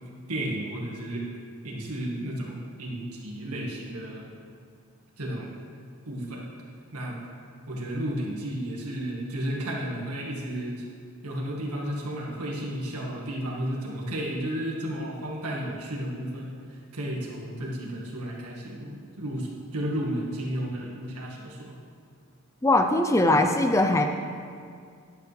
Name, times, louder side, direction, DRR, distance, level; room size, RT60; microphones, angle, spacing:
voice 1, 0.3-1.3 1.6-4.3 5.2-5.5 6.1-6.5 6.9-7.2 7.7-10.8 11.2-21.7, right 1 dB, 85° right, -2 dB, 1.9 m, -33 dB
voice 2, 22.6-24.1, left 2 dB, 15° left, 5 dB, 0.4 m, -21 dB
11.5 x 9.6 x 3.4 m, 2.2 s
head